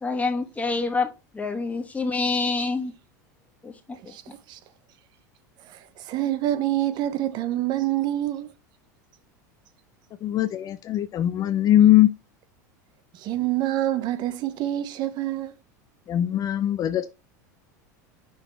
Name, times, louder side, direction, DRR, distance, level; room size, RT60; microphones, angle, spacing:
voice 1, 0.0-2.9 3.6-3.7 4.0-4.1, left 3 dB, 15° left, 1.6 m, -27 dB
voice 2, 5.7-8.5 13.1-15.5, right 13 dB, 50° right, 0.6 m, -26 dB
voice 3, 10.2-12.1 16.1-17.1, left 12 dB, 40° left, 0.5 m, -20 dB
6.1 x 3.7 x 4.1 m
hypercardioid pair, 90°, 10 cm